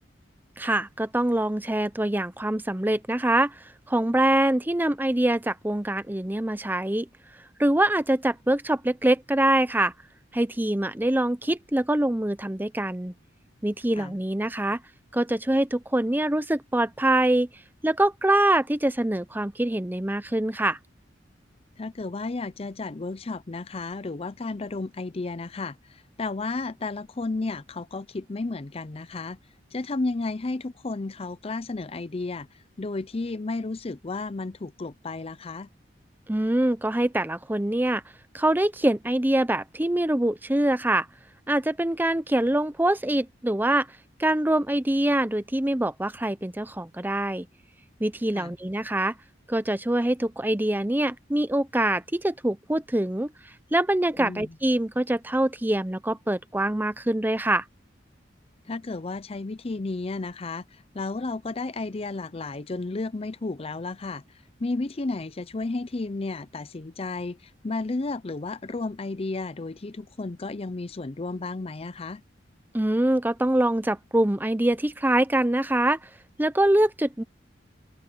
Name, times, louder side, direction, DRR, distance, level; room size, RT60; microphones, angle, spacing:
voice 1, 0.6-3.6 3.9-7.1 7.6-9.9 10.3-13.1 13.6-14.8 15.1-17.5 17.8-20.8 36.3-38.0 38.3-41.1 41.5-43.9 44.2-47.5 48.0-49.1 49.5-53.3 53.7-57.6 72.7-76.0 76.4-77.2, right 1 dB, 10° right, 0.7 m, -24 dB
voice 2, 21.8-29.4 29.7-32.5 32.8-35.7 48.4-48.5 54.2-54.5 58.7-64.2 64.6-72.2, left 3 dB, 35° left, 0.6 m, -32 dB
open air
head